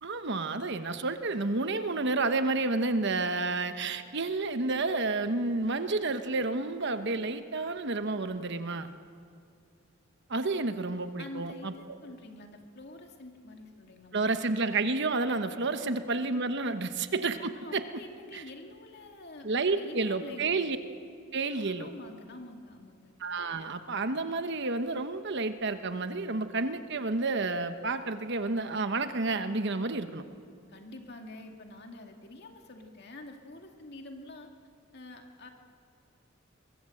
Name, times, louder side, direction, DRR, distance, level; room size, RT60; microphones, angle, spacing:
voice 1, 0.0-8.9 10.3-11.7 14.1-17.8 18.3-18.4 19.4-20.8 21.3-21.9 23.2-30.2, right 3 dB, 60° right, 9 dB, 1.1 m, -30 dB
voice 2, 11.2-14.6 15.7-16.0 17.5-20.8 21.5-23.1 30.7-34.5 34.9-35.5, left 2 dB, 55° left, 3 dB, 2.4 m, -47 dB
23.0 x 22.5 x 7.8 m, 2.3 s
head